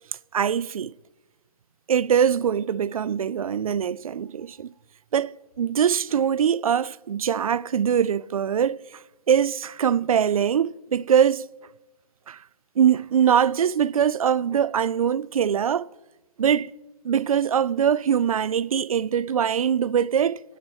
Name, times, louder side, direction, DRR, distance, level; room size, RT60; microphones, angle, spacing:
voice 1, 0.3-0.9 1.9-4.7 5.1-9.0 9.3-11.5 12.3-12.4 12.8-15.9 16.4-16.7 17.0-20.4, right 8 dB, 65° right, 0.4 m, -22 dB
21.5 x 11.0 x 3.1 m
hypercardioid pair, 180°, 19 cm